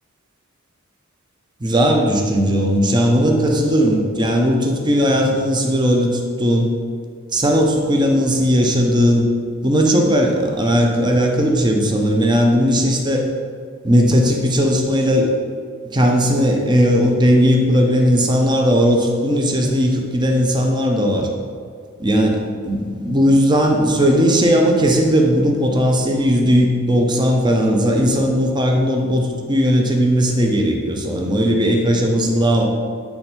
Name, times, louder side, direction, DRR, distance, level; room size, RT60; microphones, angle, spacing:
voice 1, 1.6-6.7 7.3-9.3 9.6-13.3 13.8-15.3 15.9-21.3 22.0-32.6, equal, 20° right, 1 dB, 0.7 m, -17 dB
8.3 x 3.4 x 4.4 m, 2.1 s
head